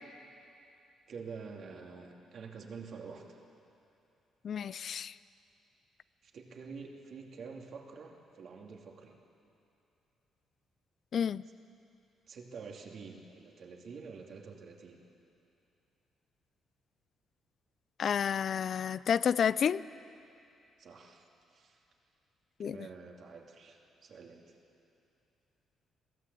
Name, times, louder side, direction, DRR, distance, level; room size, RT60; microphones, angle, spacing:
voice 1, 1.1-3.4 6.2-9.1 12.3-15.0 20.8-21.2 21.5-21.8 22.6-24.6, right 5 dB, 60° right, 2.7 m, -47 dB
voice 2, 4.4-5.1 11.1-11.4 18.0-19.8 22.6-22.8, left 8 dB, 55° left, 0.4 m, -30 dB
21.5 x 16.0 x 8.4 m
cardioid pair, 90°, 0 cm